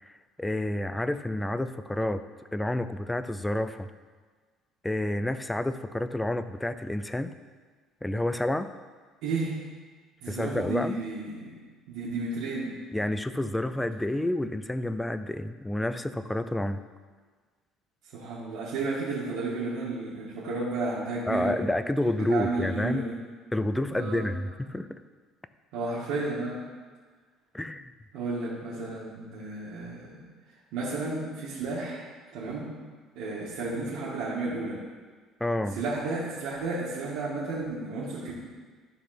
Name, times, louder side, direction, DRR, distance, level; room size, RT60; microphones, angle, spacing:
voice 1, 0.0-2.2 2.5-3.9 4.8-7.3 8.0-8.7 10.3-11.0 12.9-16.8 21.3-23.1 23.5-24.9 27.5-27.9 35.4-35.8, left 1 dB, 5° left, 11 dB, 0.3 m, -29 dB
voice 2, 9.2-9.6 10.2-11.6 11.9-12.7 18.1-21.6 22.2-23.2 23.9-24.3 25.7-26.6 28.1-30.3 30.7-32.0 32.3-32.7 33.2-34.8 35.8-38.3, right 3 dB, 80° right, -8 dB, 1.9 m, -32 dB
12.0 x 4.2 x 6.0 m, 1.5 s
cardioid pair, 170°, 0 cm